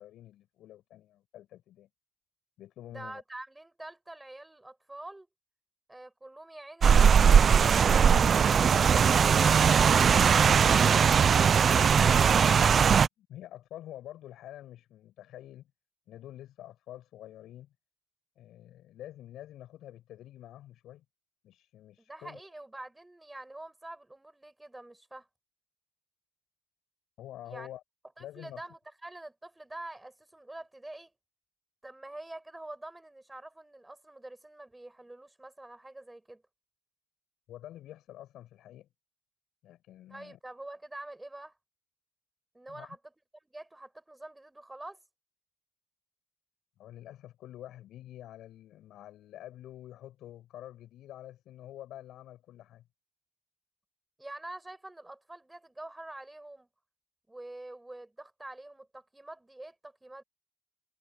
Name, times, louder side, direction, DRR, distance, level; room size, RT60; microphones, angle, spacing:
voice 1, 0.0-1.9 2.6-3.2 13.2-15.7 16.1-17.7 18.4-21.0 21.4-22.4 27.2-27.8 28.2-28.6 37.5-38.9 39.6-40.4 42.7-43.0 46.8-52.8, left 13 dB, 85° left, 7.6 m, -47 dB
voice 2, 2.9-5.3 5.9-9.7 22.1-25.3 27.4-27.7 28.2-31.1 31.8-36.4 40.1-41.6 42.5-43.0 43.4-45.0 54.2-56.7 57.3-60.2, right 2 dB, 10° right, 6.6 m, -46 dB
Rain, 6.8-13.1, right 7 dB, 50° right, 0.5 m, -20 dB
cardioid pair, 90°, 0 cm